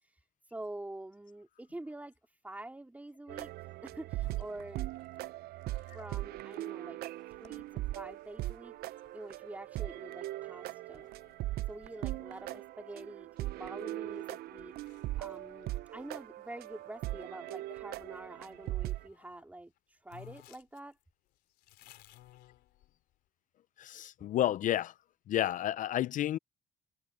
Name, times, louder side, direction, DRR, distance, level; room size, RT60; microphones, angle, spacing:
voice 1, 0.0-5.2 5.9-7.0 7.3-11.1 11.7-14.9 15.2-21.0, right 1 dB, 10° right, 3.4 m, -47 dB
sound 1, 3.3-19.1, right 16 dB, 70° right, 0.4 m, -40 dB
sound 2, 4.2-17.4 18.0-19.5 19.8-19.9 20.1-23.2, left 16 dB, 85° left, 3.7 m, -62 dB
voice 2, 23.8-24.9 25.3-26.4, left 12 dB, 50° left, 0.4 m, -31 dB
cardioid pair, 110°, 17 cm